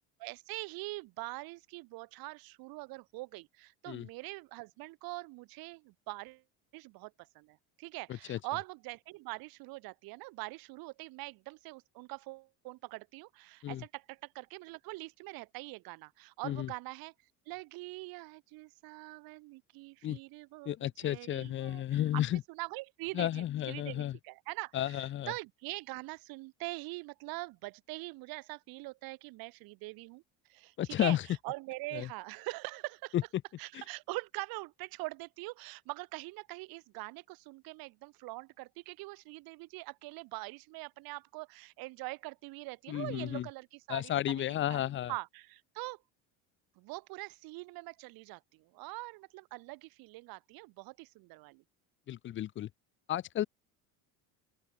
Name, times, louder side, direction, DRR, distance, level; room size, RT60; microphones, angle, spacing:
voice 1, 0.2-6.4 6.7-17.1 17.5-30.2 30.5-31.2 31.4-33.1 33.6-44.4 44.7-44.8 45.1-46.0 46.8-51.6, right 23 dB, 70° right, 2.1 m, -43 dB
voice 2, 20.7-22.4 23.1-24.2 24.7-25.3 30.8-31.2 31.9-32.1 33.1-33.2 42.9-43.5 43.9-45.1 52.1-52.7 53.1-53.5, left 12 dB, 35° left, 0.5 m, -32 dB
open air
supercardioid pair, 110°, 37 cm